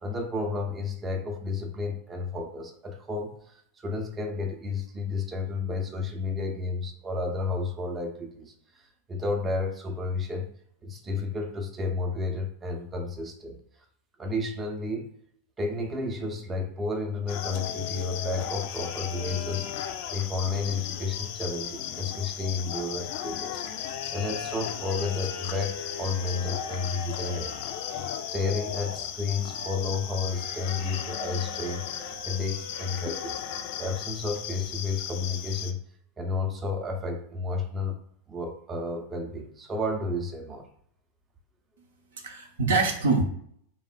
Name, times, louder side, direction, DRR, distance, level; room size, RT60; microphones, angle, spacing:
voice 1, 0.0-10.5 10.8-13.6 14.2-15.1 15.6-19.7 20.1-27.6 28.3-31.8 32.2-33.4 33.8-35.8 36.2-38.0 38.3-40.7, left 3 dB, 20° right, 2 dB, 0.6 m, -31 dB
sound 1, 17.3-35.7, left 9 dB, 50° left, 0.4 m, -35 dB
Wind instrument woodwind instrument, 24.9-33.4, equal, 85° left, 0.7 m, -47 dB
voice 2, 41.8-43.2, right 3 dB, 65° right, 3 dB, 0.6 m, -26 dB
3.2 x 2.1 x 3.5 m, 0.67 s
figure-of-eight pair, 90°, 0 cm